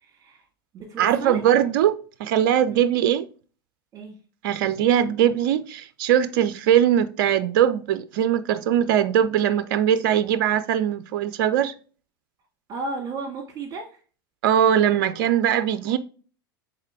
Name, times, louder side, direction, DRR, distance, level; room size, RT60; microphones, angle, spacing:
voice 1, 0.0-0.4 0.7-1.4 2.7-2.8 3.9-4.2 12.7-13.9, right 3 dB, 30° right, 2.0 m, -33 dB
voice 2, 1.0-3.3 4.4-11.7 14.4-16.0, right 10 dB, 55° right, 0.5 m, -21 dB
6.4 x 4.2 x 3.5 m
figure-of-eight pair, 85°, 12 cm